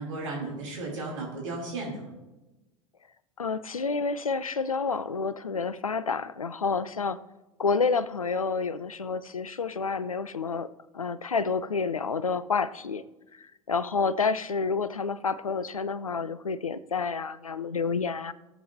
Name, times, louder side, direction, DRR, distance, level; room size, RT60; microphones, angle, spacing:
voice 1, 0.0-2.1, right 2 dB, 65° right, -2 dB, 2.9 m, -34 dB
voice 2, 3.4-7.2 7.6-13.0 13.4-18.3, left 5 dB, 85° left, 16 dB, 0.5 m, -29 dB
18.5 x 7.3 x 2.7 m, 1.1 s
figure-of-eight pair, 85°, 17 cm